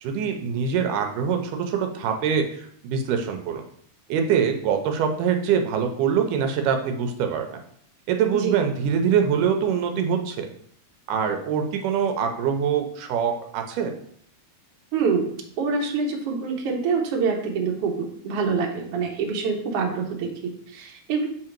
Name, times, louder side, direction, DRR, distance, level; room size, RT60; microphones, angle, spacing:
voice 1, 0.0-3.6 4.1-7.6 8.1-10.5 11.1-13.9, right 7 dB, 85° right, 5 dB, 2.3 m, -24 dB
voice 2, 14.9-15.3 15.6-21.3, right 5 dB, 60° right, 1 dB, 1.7 m, -26 dB
7.1 x 3.8 x 4.5 m, 0.64 s
omnidirectional pair, 3.6 m